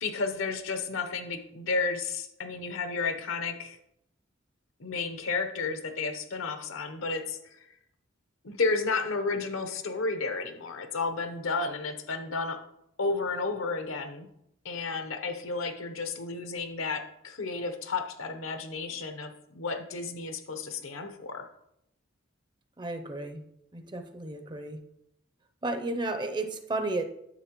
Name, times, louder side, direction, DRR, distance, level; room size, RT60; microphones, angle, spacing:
voice 1, 0.0-3.8 4.8-7.7 8.4-12.6 13.0-14.3 14.6-21.5, left 4 dB, 75° left, 8 dB, 0.8 m, -32 dB
voice 2, 22.8-23.4 23.7-24.8 25.6-27.0, right 2 dB, 20° right, 8 dB, 0.5 m, -33 dB
9.9 x 6.9 x 3.0 m, 0.78 s
head